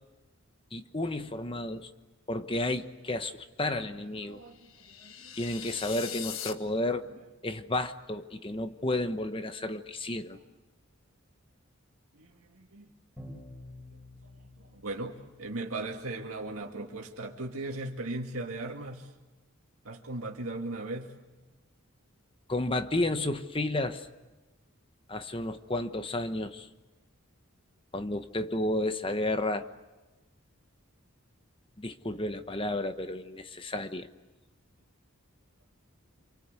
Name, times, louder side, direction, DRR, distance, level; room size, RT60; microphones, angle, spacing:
voice 1, 0.7-1.9 2.3-4.4 5.3-7.1 7.4-10.4 22.5-24.1 25.1-26.7 27.9-29.7 31.8-34.1, left 1 dB, 25° left, 9 dB, 1.1 m, -32 dB
voice 2, 4.3-5.3 9.7-9.8 12.1-12.9 14.6-19.1 19.8-21.1, right 2 dB, 90° right, 0 dB, 2.3 m, -38 dB
sound 1, 4.5-6.5, left 9 dB, 75° left, 1.5 m, -41 dB
Bowed string instrument, 13.2-16.0, left 1 dB, 5° right, 5.4 m, -49 dB
27.5 x 24.5 x 8.3 m, 1.1 s
head